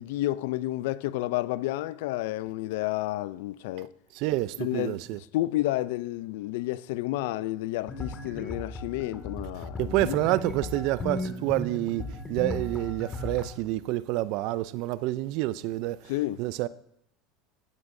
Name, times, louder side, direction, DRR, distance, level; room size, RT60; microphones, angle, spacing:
voice 1, 0.0-3.9 4.6-5.0 5.3-10.2 16.1-16.4, left 16 dB, 80° left, 0.4 m, -30 dB
voice 2, 4.1-5.2 9.8-16.1 16.4-16.7, right 16 dB, 65° right, 0.5 m, -28 dB
sound 1, 7.9-13.6, left 2 dB, 25° left, 2.0 m, -36 dB
15.0 x 9.6 x 2.6 m
supercardioid pair, 110°, 0 cm